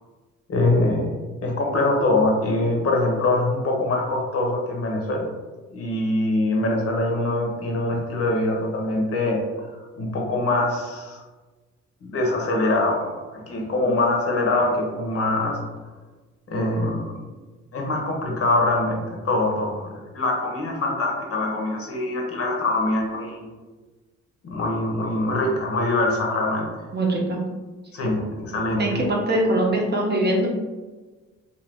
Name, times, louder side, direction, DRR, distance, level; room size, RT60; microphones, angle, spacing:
voice 1, 0.5-1.2 1.4-5.3 5.7-9.4 10.0-11.2 12.0-15.6 16.5-17.2 17.7-23.5 24.4-26.7 27.9-29.0, left 2 dB, 50° left, 0 dB, 0.8 m, -23 dB
voice 2, 26.9-27.4 28.8-30.5, right 1 dB, 35° right, -1 dB, 0.7 m, -22 dB
2.6 x 2.5 x 3.3 m, 1.3 s
cardioid pair, 90°, 30 cm